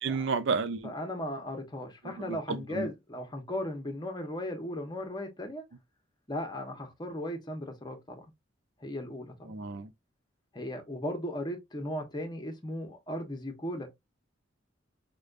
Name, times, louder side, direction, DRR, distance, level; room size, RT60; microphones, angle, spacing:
voice 1, 0.0-0.9 2.0-2.9 9.5-9.9, right 4 dB, 65° right, 0.5 m, -32 dB
voice 2, 0.8-5.6 6.3-8.3 8.8-9.5 10.5-13.9, left 1 dB, 20° left, 0.8 m, -37 dB
5.0 x 2.2 x 2.4 m
head